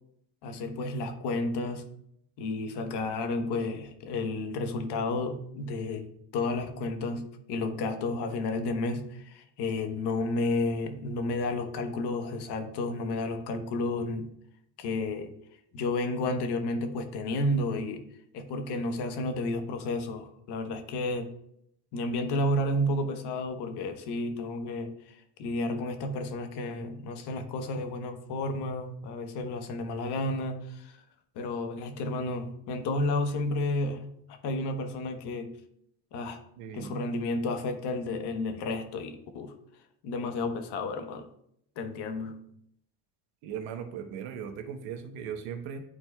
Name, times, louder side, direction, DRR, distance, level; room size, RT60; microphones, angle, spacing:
voice 1, 0.4-1.9 2.4-14.3 14.8-15.3 15.7-18.0 18.3-21.3 21.9-31.0 31.3-35.6 36.1-36.4 36.7-39.5 40.0-41.3 41.8-42.4, left 2 dB, 65° left, 6 dB, 1.1 m, -31 dB
voice 2, 36.6-36.9 43.4-45.8, right 7 dB, 85° right, 6 dB, 1.1 m, -38 dB
11.0 x 4.4 x 2.3 m, 0.73 s
cardioid pair, 105°, 44 cm